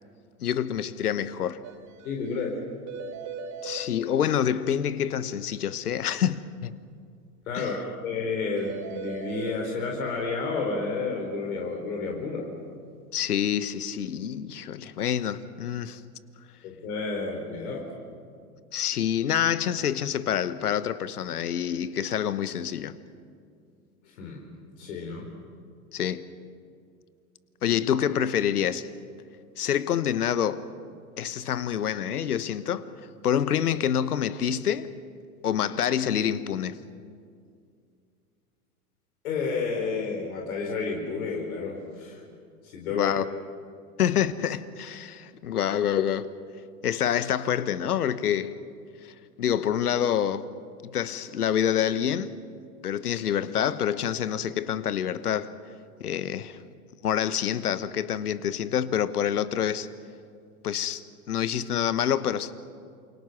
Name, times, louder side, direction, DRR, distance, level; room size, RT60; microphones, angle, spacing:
voice 1, 0.4-1.6 3.6-6.7 7.5-7.8 13.1-16.0 18.7-23.0 25.9-26.3 27.6-28.9 29.6-30.7 31.2-32.9 33.2-34.9 35.4-36.8 42.9-43.3 44.0-46.3 46.8-48.6 49.0-50.6 50.9-52.4 52.8-55.5 56.0-56.6 57.0-59.9 60.6-62.5, left 9 dB, 85° left, 1.2 m, -27 dB
sound 1, 1.6-1.7 2.0-2.1 2.4-2.5 2.9-3.8 8.6-9.5, right 5 dB, 40° right, 2.5 m, -37 dB
voice 2, 2.0-2.5 7.5-12.5 16.6-17.9 24.0-24.4 24.8-25.3 39.2-42.2 42.6-43.1, left 4 dB, 65° left, 4.3 m, -31 dB
28.0 x 24.5 x 6.0 m
hypercardioid pair, 105°, 45 cm